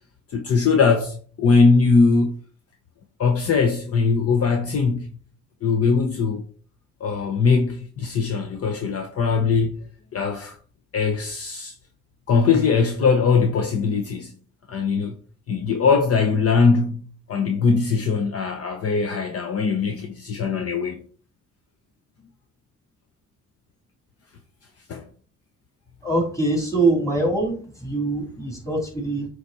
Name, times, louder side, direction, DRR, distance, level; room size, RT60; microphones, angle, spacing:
voice 1, 0.3-2.4 3.2-5.1 5.6-6.4 7.0-9.8 10.1-10.6 10.9-11.7 12.3-14.3 14.7-15.1 15.5-17.0 17.3-21.0 24.9-25.0, left 5 dB, 50° left, 0.9 m, -21 dB
voice 2, 26.0-29.3, right 2 dB, 10° left, 3.3 m, -23 dB
7.8 x 3.4 x 4.1 m
cardioid pair, 90°, 30 cm